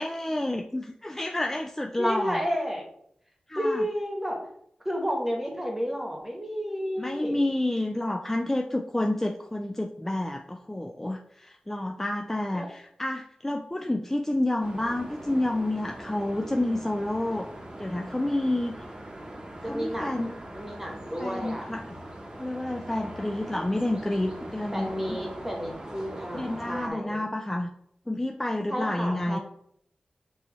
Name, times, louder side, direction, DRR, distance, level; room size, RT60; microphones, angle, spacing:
voice 1, 0.0-2.5 3.5-3.8 7.0-17.5 17.8-18.8 19.6-20.3 21.2-22.0 22.4-25.2 26.3-27.7 28.1-29.4, left 1 dB, 15° left, 3 dB, 0.3 m, -29 dB
voice 2, 2.0-2.8 3.6-4.4 4.8-7.4 12.5-12.7 19.6-21.7 24.7-27.2 28.7-29.4, equal, 10° right, 1 dB, 1.2 m, -31 dB
sound 1, 14.6-26.9, right 1 dB, 30° right, 0.9 m, -41 dB
5.3 x 2.9 x 3.1 m, 0.70 s
wide cardioid pair, 75°, 3 cm